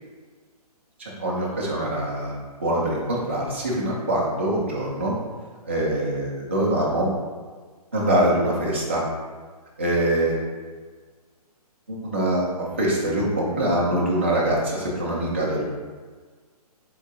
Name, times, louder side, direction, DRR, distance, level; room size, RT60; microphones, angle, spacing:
voice 1, 1.2-2.3 2.6-5.1 5.7-7.1 7.9-9.0 9.8-10.4 11.9-15.6, right 1 dB, 20° right, -6 dB, 0.4 m, -24 dB
3.8 x 3.6 x 2.3 m, 1.5 s
hypercardioid pair, 180°, 20 cm